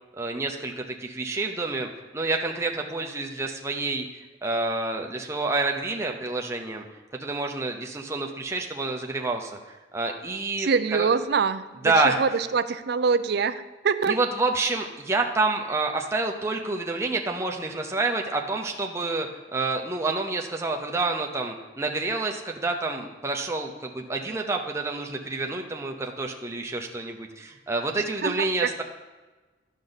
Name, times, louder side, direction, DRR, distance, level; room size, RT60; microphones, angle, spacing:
voice 1, 0.2-4.0 4.4-6.8 7.2-11.1 11.8-12.2 14.1-28.8, right 3 dB, 15° right, 1 dB, 0.7 m, -28 dB
voice 2, 10.6-14.2 28.2-28.8, right 5 dB, 60° right, 13 dB, 0.4 m, -25 dB
10.5 x 6.4 x 4.0 m, 1.2 s
head